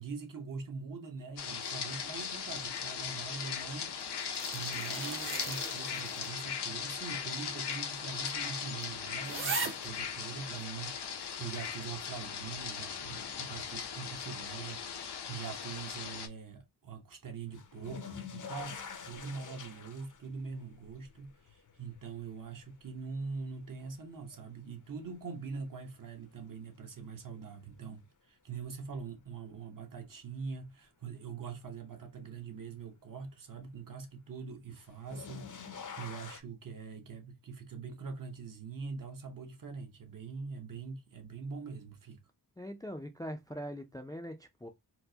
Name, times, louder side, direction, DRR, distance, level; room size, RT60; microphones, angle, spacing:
voice 1, 0.0-42.2, right 5 dB, 55° right, 0.9 m, -43 dB
sound 1, 1.4-16.3, left 7 dB, 85° left, 0.7 m, -38 dB
sound 2, 4.0-6.5 6.8-6.9 7.7-7.8 8.2-8.3 8.8-8.9 9.2-9.9 10.6-10.7, right 3 dB, 30° right, 0.6 m, -39 dB
sound 3, 17.5-24.6 25.0-25.7 27.3-27.4 28.9-29.0 34.8-36.4, left 6 dB, 50° left, 0.6 m, -47 dB
voice 2, 42.6-44.7, equal, 10° left, 0.4 m, -42 dB
4.4 x 2.1 x 2.7 m
wide cardioid pair, 105°, 39 cm